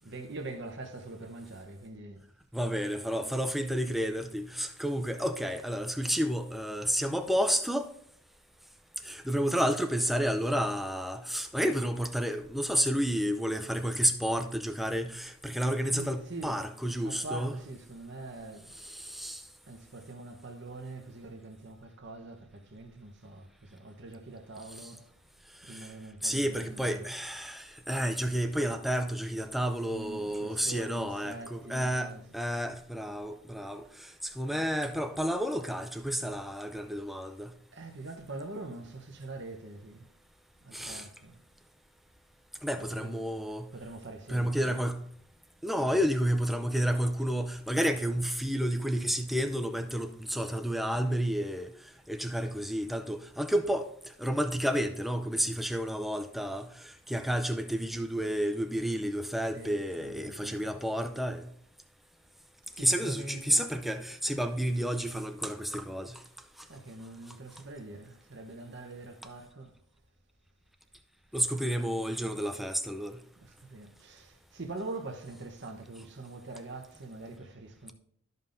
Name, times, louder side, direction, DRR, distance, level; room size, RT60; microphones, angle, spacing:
voice 1, 0.0-2.2 15.9-16.6 17.0-18.7 19.7-25.1 25.6-27.1 29.9-32.3 34.5-34.7 37.7-40.1 40.6-41.4 42.7-43.3 43.7-44.7 45.7-46.0 50.9-51.3 59.5-60.8 62.7-63.8 66.0-66.3 66.7-69.8 71.5-72.0 72.4-72.5 73.4-77.9, right 2 dB, 50° right, 1.0 m, -44 dB
voice 2, 2.5-7.9 9.0-17.5 18.8-19.4 25.7-25.9 26.2-33.8 34.2-37.5 40.7-41.0 42.6-43.7 44.3-45.0 45.6-51.7 52.1-53.9 54.2-56.7 57.1-61.4 62.8-66.2 71.3-73.2, equal, ahead, 0.4 m, -30 dB
13.5 x 5.4 x 2.6 m
head